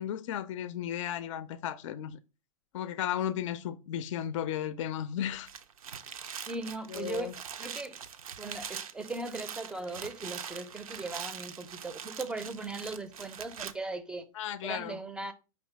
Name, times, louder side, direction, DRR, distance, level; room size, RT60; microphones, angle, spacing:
voice 1, 0.0-2.2 2.7-5.5 6.9-7.3 14.3-15.0, left 10 dB, 60° left, 0.4 m, -34 dB
sound 1, 5.3-13.7, right 7 dB, 75° right, 0.5 m, -43 dB
voice 2, 6.5-8.0 8.4-14.3 14.6-15.3, right 3 dB, 5° right, 0.5 m, -38 dB
5.2 x 3.3 x 3.1 m
hypercardioid pair, 105°, 18 cm